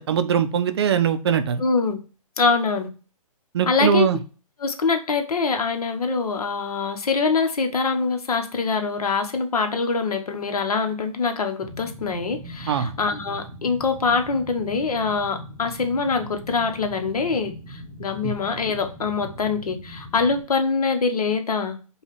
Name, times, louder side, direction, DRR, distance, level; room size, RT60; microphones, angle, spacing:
voice 1, 0.0-1.6 3.5-4.2 12.7-12.9 18.2-18.3, right 8 dB, 45° right, 11 dB, 0.5 m, -21 dB
voice 2, 1.6-2.0 2.4-2.9 3.7-4.1 4.6-21.8, left 4 dB, 80° left, 7 dB, 1.0 m, -24 dB
sound 1, 11.6-20.4, equal, ahead, 0.8 m, -40 dB
5.4 x 2.3 x 3.2 m, 0.35 s
hypercardioid pair, 150°, 19 cm